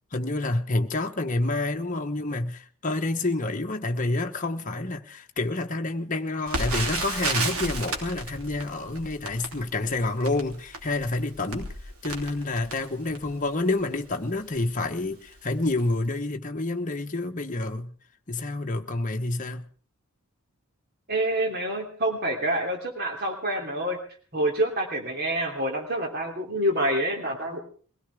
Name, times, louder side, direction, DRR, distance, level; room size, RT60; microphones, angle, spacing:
voice 1, 0.1-11.7 12.0-17.9 18.3-19.7, left 2 dB, 35° left, 1.1 m, -28 dB
Crackle, 6.5-13.4 14.0-14.1 14.5-14.7 15.3-15.5 15.8-15.9, right 2 dB, 70° right, 3.0 m, -32 dB
voice 2, 21.1-24.0 24.3-27.6, right 1 dB, 45° right, 3.1 m, -27 dB
22.5 x 17.0 x 3.6 m
head